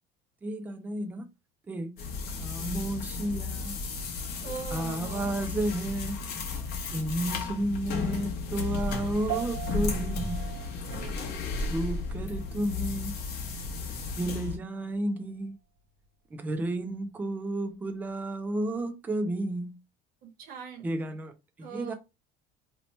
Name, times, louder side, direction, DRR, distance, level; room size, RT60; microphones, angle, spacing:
voice 1, 0.4-1.3 1.7-1.9 2.3-3.8 4.7-6.2 6.9-10.6 11.7-13.1 14.2-15.5 16.3-19.8 20.8-21.9, right 1 dB, 10° right, 0.3 m, -32 dB
sound 1, 2.0-14.6, left 4 dB, 55° left, 0.8 m, -34 dB
voice 2, 4.4-5.5 10.9-11.3 20.2-20.8 21.6-22.0, right 6 dB, 50° right, 0.8 m, -41 dB
sound 2, 9.3-18.9, right 13 dB, 80° right, 0.8 m, -44 dB
2.8 x 2.1 x 4.1 m
cardioid pair, 170°, 19 cm